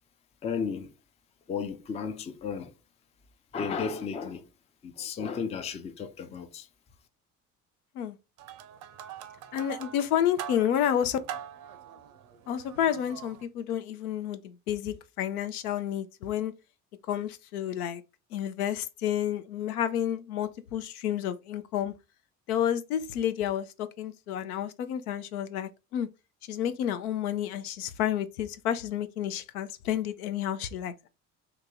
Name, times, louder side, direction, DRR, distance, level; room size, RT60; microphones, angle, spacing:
voice 1, 0.4-0.9 1.5-2.7 3.5-4.5 4.8-6.7, left 6 dB, 15° left, 0.4 m, -34 dB
sound 1, 8.4-13.4, right 10 dB, 45° right, 0.6 m, -43 dB
voice 2, 9.5-11.2 12.5-16.5 17.1-18.0 18.3-21.9 22.5-26.1 26.5-31.1, left 10 dB, 70° left, 0.6 m, -30 dB
2.9 x 2.8 x 3.5 m
figure-of-eight pair, 55°, 46 cm